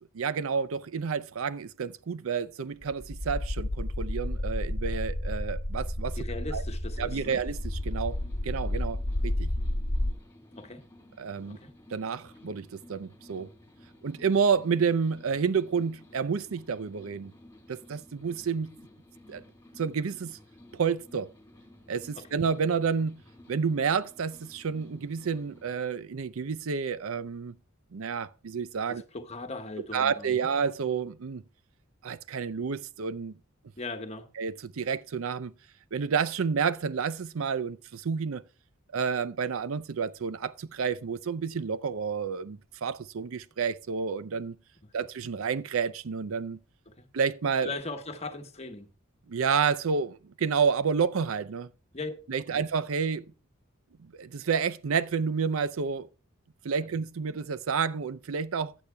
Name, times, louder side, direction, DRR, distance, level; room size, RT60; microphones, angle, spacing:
voice 1, 0.1-6.2 6.5-6.6 7.0-8.2 8.4-9.5 11.2-11.6 11.9-13.5 14.0-17.3 17.7-18.7 19.3-19.4 19.8-20.4 20.7-21.3 21.9-23.2 23.5-27.5 27.9-29.0 29.9-31.4 32.0-33.3 34.4-35.5 35.9-38.4 38.9-44.6 44.9-46.6 47.1-47.7 49.3-51.7 52.3-53.3 54.2-56.1 56.6-58.7, right 6 dB, 70° right, 0.5 m, -30 dB
sound 1, 2.8-10.1, left 1 dB, 50° left, 1.2 m, -31 dB
voice 2, 6.2-7.4 10.5-10.8 11.5-11.7 22.1-22.4 28.9-30.5 33.8-34.3 46.9-47.1 47.6-48.9 51.9-52.1 52.5-52.6, left 2 dB, 30° left, 1.2 m, -39 dB
sound 2, 6.9-25.8, left 1 dB, 10° left, 2.5 m, -55 dB
15.5 x 9.9 x 2.2 m
head